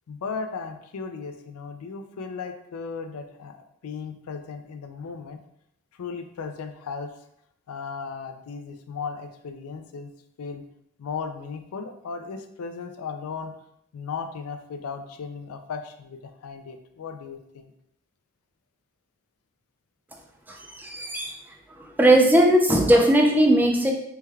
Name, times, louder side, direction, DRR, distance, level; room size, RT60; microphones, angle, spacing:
voice 1, 0.1-3.6 3.8-5.4 6.0-7.1 7.7-10.1 10.4-10.6 11.0-13.5 13.9-17.7, left 5 dB, 90° left, 7 dB, 0.4 m, -36 dB
voice 2, 20.5-21.4 21.8-23.9, right 1 dB, 10° right, 1 dB, 0.3 m, -19 dB
3.4 x 2.2 x 3.2 m, 0.75 s
head